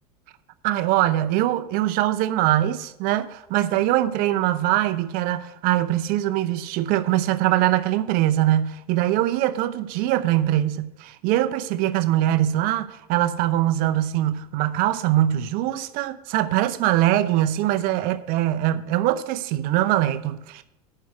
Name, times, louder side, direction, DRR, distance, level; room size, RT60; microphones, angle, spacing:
voice 1, 0.6-20.6, right 13 dB, 50° right, 0.6 m, -22 dB
9.3 x 5.7 x 6.7 m
hypercardioid pair, 80°, 19 cm